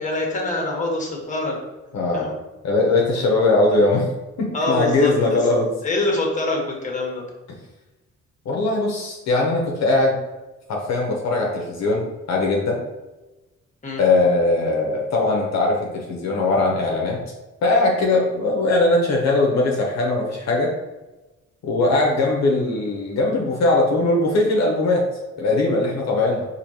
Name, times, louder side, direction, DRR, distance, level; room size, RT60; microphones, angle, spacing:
voice 1, 0.0-1.6 2.1-2.3 4.5-5.5 5.8-7.2 13.8-14.0, left 2 dB, 25° left, 0 dB, 1.1 m, -25 dB
voice 2, 1.9-2.3 2.6-4.1 4.4-5.7 8.5-10.2 10.7-12.8 14.0-17.2 17.6-20.7 21.6-25.0 25.4-26.5, left 2 dB, 60° left, -1 dB, 0.8 m, -20 dB
4.4 x 2.8 x 2.7 m, 1.1 s
cardioid pair, 90°, 30 cm